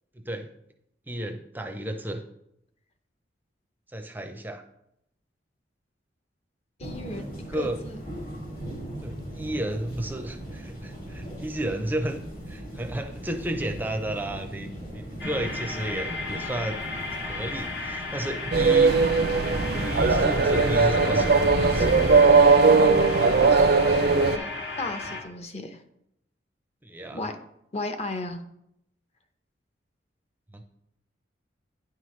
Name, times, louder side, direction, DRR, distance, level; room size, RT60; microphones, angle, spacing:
voice 1, 0.1-0.5 1.1-2.2 3.9-4.6 7.2-7.8 9.0-12.2 12.5-14.7 14.9-16.8 17.1-19.0 19.8-21.9 26.8-27.3 30.5-30.6, right 1 dB, 10° right, 6 dB, 0.5 m, -33 dB
sound 1, 6.8-22.1, right 1 dB, 55° left, 3.2 m, -37 dB
voice 2, 6.8-8.0 23.5-24.5 24.8-25.8 27.1-27.4 27.7-28.4, left 2 dB, 35° left, 7 dB, 0.7 m, -35 dB
sound 2, 15.2-25.2, left 3 dB, 80° left, 1.5 m, -34 dB
sound 3, 18.5-24.4, right 4 dB, 60° right, 0.5 m, -19 dB
9.8 x 5.8 x 3.1 m, 0.78 s
head